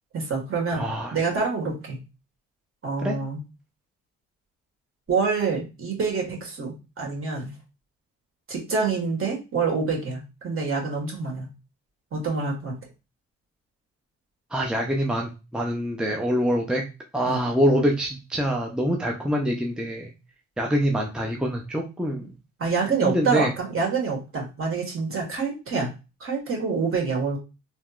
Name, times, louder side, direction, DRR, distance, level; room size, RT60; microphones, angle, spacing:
voice 1, 0.1-2.0 2.8-3.4 5.1-7.5 8.5-11.5 12.1-12.7 17.2-17.4 22.6-25.9 26.2-27.4, right 4 dB, 45° right, 0 dB, 1.6 m, -26 dB
voice 2, 0.7-1.1 3.0-3.1 14.5-16.8 17.1-20.1 20.6-22.3 23.0-23.5, equal, 5° right, 0 dB, 0.6 m, -25 dB
3.4 x 2.8 x 2.4 m, 0.28 s
cardioid pair, 90°, 30 cm